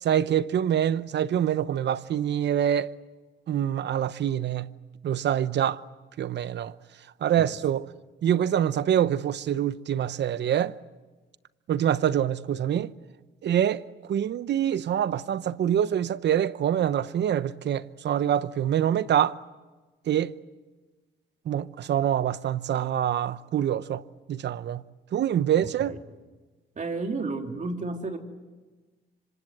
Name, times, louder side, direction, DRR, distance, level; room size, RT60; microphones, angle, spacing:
voice 1, 0.0-2.9 3.5-4.7 5.0-5.8 6.2-6.7 7.2-7.9 8.2-10.8 11.7-12.9 13.4-13.8 14.1-19.4 20.1-20.3 21.5-24.0 24.3-24.8 25.1-25.9, right 10 dB, 60° right, 0.9 m, -25 dB
voice 2, 26.7-28.2, right 3 dB, 40° right, 3.4 m, -31 dB
26.0 x 26.0 x 7.9 m
cardioid pair, 90°, 20 cm